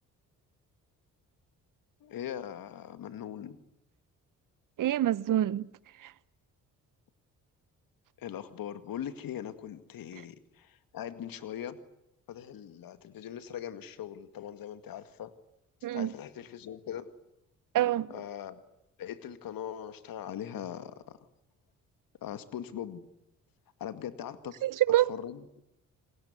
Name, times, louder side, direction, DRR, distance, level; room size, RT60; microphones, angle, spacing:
voice 1, 2.0-3.6 8.2-11.8 12.3-15.3 15.9-17.1 18.1-18.6 19.0-21.2 22.2-23.0 23.8-24.6 25.1-25.4, left 10 dB, 65° left, 2.1 m, -40 dB
voice 2, 4.8-5.7 6.0-6.1 15.8-16.1 17.7-18.1 24.6-25.1, right 13 dB, 55° right, 0.9 m, -26 dB
28.0 x 20.0 x 9.6 m
hypercardioid pair, 50°, 38 cm